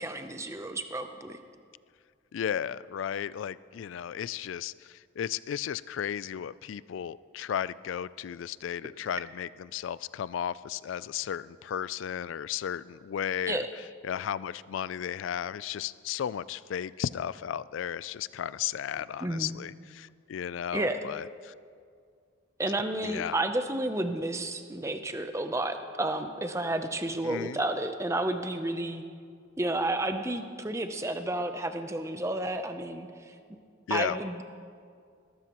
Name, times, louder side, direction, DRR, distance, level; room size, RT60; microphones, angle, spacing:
voice 1, 0.0-1.4 13.5-13.7 19.2-19.5 20.7-21.0 22.6-29.0 29.6-33.4 33.9-34.4, right 1 dB, 15° right, 8 dB, 0.6 m, -31 dB
voice 2, 2.3-13.6 14.0-21.5 23.0-23.4 27.2-27.6 33.9-34.2, left 9 dB, 75° left, 19 dB, 0.3 m, -34 dB
20.5 x 13.5 x 3.0 m, 2.2 s
head